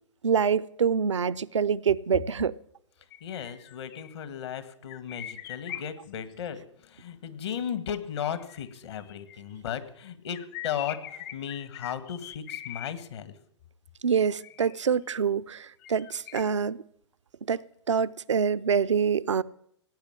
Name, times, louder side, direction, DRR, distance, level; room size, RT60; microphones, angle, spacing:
voice 1, 0.2-2.5 14.0-16.8 17.4-19.4, right 7 dB, 80° right, 0.6 m, -26 dB
sound 1, 3.1-4.1 4.9-6.3 8.2-9.6 10.3-12.9 14.4-14.9 15.8-16.4, left 13 dB, 45° left, 1.1 m, -42 dB
voice 2, 3.2-13.3, left 8 dB, 65° left, 1.7 m, -36 dB
17.0 x 8.8 x 8.8 m
hypercardioid pair, 110°, 15 cm